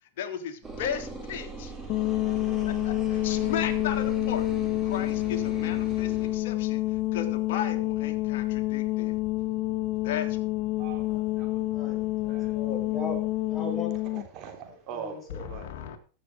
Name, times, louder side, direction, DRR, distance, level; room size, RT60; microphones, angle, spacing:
voice 1, 0.2-1.7 2.2-2.3 2.6-4.5 4.8-9.1 10.0-10.4 15.5-16.0, left 8 dB, 65° left, 4 dB, 1.9 m, -36 dB
sound 1, 0.6-6.4, right 4 dB, 20° right, 4.0 m, -40 dB
sound 2, 1.9-14.3, left 18 dB, 45° left, 0.6 m, -28 dB
voice 2, 10.8-12.6 14.1-15.7, right 7 dB, 45° right, 4 dB, 3.3 m, -43 dB
voice 3, 11.7-13.9 14.9-15.4, left 2 dB, 20° left, -1 dB, 4.7 m, -38 dB
15.0 x 6.6 x 4.9 m, 0.39 s
hypercardioid pair, 120°, 0 cm